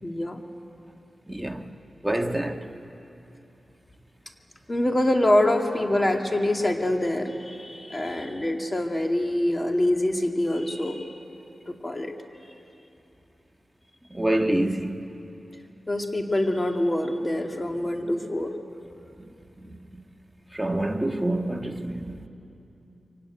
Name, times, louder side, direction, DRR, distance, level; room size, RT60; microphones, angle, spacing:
voice 1, 0.0-0.4 4.7-11.1 11.7-12.1 15.9-18.5, left 1 dB, 30° left, 2.2 m, -25 dB
voice 2, 1.3-1.7 2.0-2.7 14.1-15.0 18.0-18.2 19.6-20.0 20.5-22.3, right 1 dB, 10° right, 1.6 m, -27 dB
24.0 x 17.0 x 9.4 m
cardioid pair, 55°, 0 cm